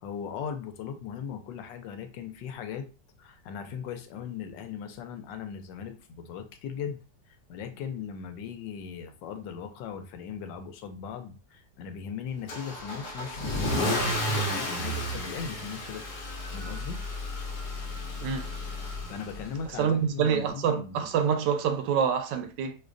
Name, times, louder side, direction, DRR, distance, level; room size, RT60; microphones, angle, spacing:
voice 1, 0.0-2.9 3.2-7.0 7.5-16.0 16.5-17.0 19.1-21.1, left 7 dB, 85° left, 1.3 m, -38 dB
Car / Engine starting / Accelerating revving vroom, 12.5-19.6, left 1 dB, 70° left, 1.2 m, -32 dB
voice 2, 19.7-22.8, right 7 dB, 90° right, 1.3 m, -26 dB
5.1 x 2.1 x 2.5 m
omnidirectional pair, 1.9 m